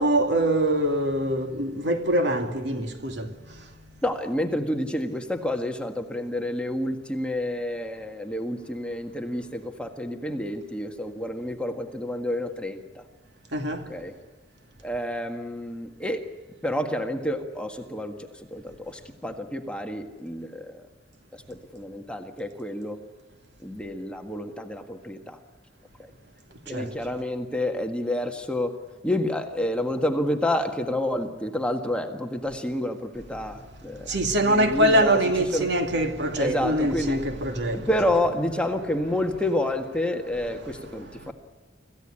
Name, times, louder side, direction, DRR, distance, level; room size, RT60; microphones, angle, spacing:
voice 1, 0.0-3.7 13.5-13.9 26.7-26.9 34.0-37.9 41.2-41.3, right 1 dB, 65° right, 2.5 m, -24 dB
voice 2, 4.0-13.1 13.9-14.1 14.8-16.3 16.6-20.9 21.3-23.0 23.6-25.4 26.0-26.1 26.7-28.8 29.0-34.2 34.4-35.2 35.5-35.7 36.4-37.2 37.7-41.3, left 1 dB, 5° left, 1.7 m, -29 dB
26.0 x 16.0 x 10.0 m
head